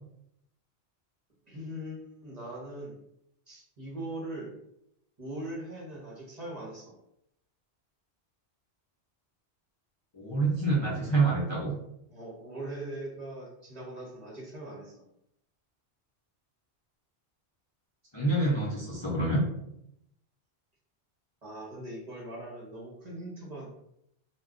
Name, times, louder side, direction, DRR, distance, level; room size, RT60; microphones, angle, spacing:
voice 1, 1.5-3.0 3.5-4.5 5.2-6.9 12.1-14.9 21.4-23.8, right 1 dB, 40° right, -4 dB, 0.8 m, -40 dB
voice 2, 10.1-11.7 18.1-19.4, right 2 dB, 35° left, -6 dB, 0.5 m, -27 dB
2.3 x 2.2 x 3.6 m, 0.79 s
omnidirectional pair, 1.1 m